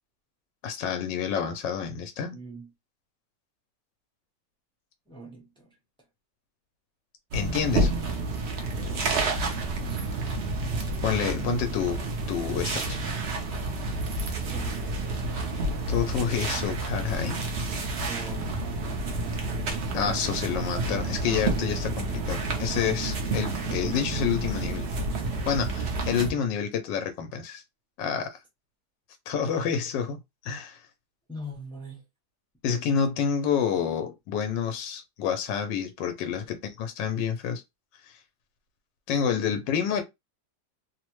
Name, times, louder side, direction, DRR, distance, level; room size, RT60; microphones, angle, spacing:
voice 1, 0.6-2.4 7.3-7.9 11.0-13.0 15.9-17.5 19.9-24.9 25.5-27.6 28.0-28.4 29.3-30.8 32.6-37.6 38.0-38.2 39.1-40.0, left 7 dB, 85° left, 1.2 m, -28 dB
voice 2, 2.3-2.7 5.1-5.7 7.7-8.2 8.7-9.2 9.8-10.1 14.5-15.3 18.0-19.1 31.3-32.0 36.4-36.7, right 1 dB, 5° left, 0.5 m, -43 dB
sound 1, 7.3-26.3, right 2 dB, 65° right, 0.6 m, -30 dB
3.1 x 2.0 x 3.0 m
omnidirectional pair, 1.9 m